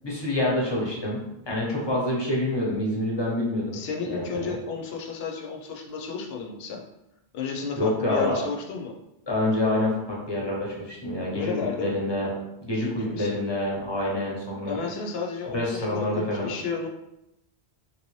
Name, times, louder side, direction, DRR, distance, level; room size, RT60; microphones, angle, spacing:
voice 1, 0.0-1.2 1.5-3.8 4.1-4.5 7.8-8.4 9.3-11.5 11.8-12.3 12.6-14.8 15.5-16.5, left 1 dB, 30° left, -4 dB, 0.8 m, -27 dB
voice 2, 3.7-6.8 7.3-9.0 11.3-11.9 12.7-13.4 14.6-16.9, left 5 dB, 75° left, 1 dB, 0.8 m, -32 dB
3.2 x 2.6 x 3.1 m, 0.89 s
omnidirectional pair, 1.0 m